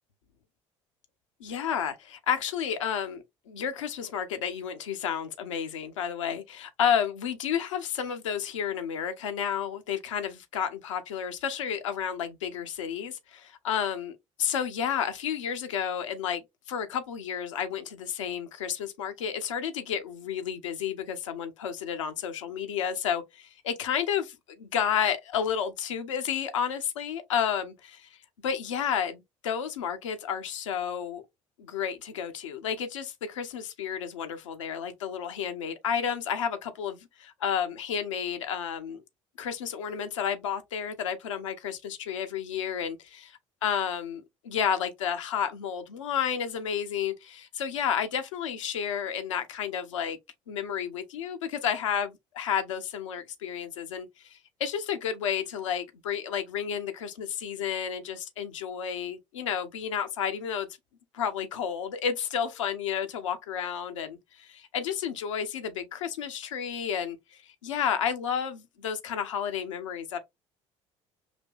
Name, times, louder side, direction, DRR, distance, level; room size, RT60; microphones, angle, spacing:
voice 1, 1.4-28.1 28.4-31.2 31.6-39.0 39.4-43.3 43.6-50.2 50.5-60.7 61.1-70.2, left 8 dB, 75° left, 0.7 m, -31 dB
5.1 x 2.9 x 2.4 m
figure-of-eight pair, 55°, 16 cm